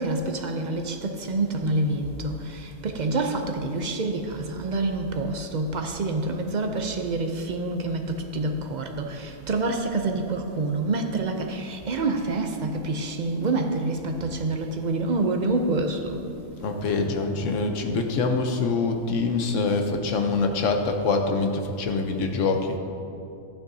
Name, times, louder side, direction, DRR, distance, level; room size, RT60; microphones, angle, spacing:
voice 1, 0.0-16.3, right 2 dB, 50° right, 0.5 m, -27 dB
voice 2, 16.6-22.8, left 3 dB, 65° left, 1.1 m, -25 dB
12.5 x 8.9 x 2.8 m
omnidirectional pair, 1.4 m